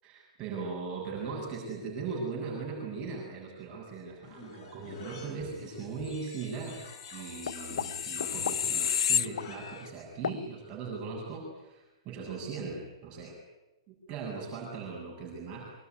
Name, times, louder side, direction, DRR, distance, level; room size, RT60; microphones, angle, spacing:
voice 1, 0.0-6.8 7.1-13.4 13.9-15.7, right 4 dB, 25° right, -2 dB, 7.5 m, -39 dB
sound 1, 4.2-9.6, left 4 dB, 35° left, 5.0 m, -48 dB
sound 2, 6.9-9.9 10.2-10.4, left 8 dB, 75° left, 1.0 m, -31 dB
24.5 x 20.5 x 9.5 m, 1.0 s
hypercardioid pair, 145°, 3 cm